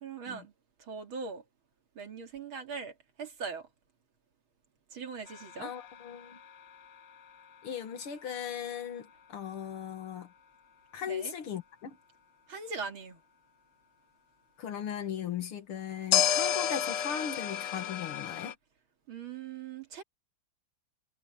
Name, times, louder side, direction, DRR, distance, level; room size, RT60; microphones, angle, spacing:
voice 1, 0.0-0.5 0.8-1.4 1.9-3.7 4.9-5.7 11.1-11.3 12.5-13.2 19.1-20.0, right 5 dB, 70° right, 3.1 m, -40 dB
sound 1, 5.3-8.3 16.1-18.5, left 9 dB, 60° left, 1.3 m, -32 dB
voice 2, 5.6-6.4 7.6-10.3 10.9-12.0 14.6-18.5, left 8 dB, 85° left, 2.5 m, -38 dB
omnidirectional pair, 2.4 m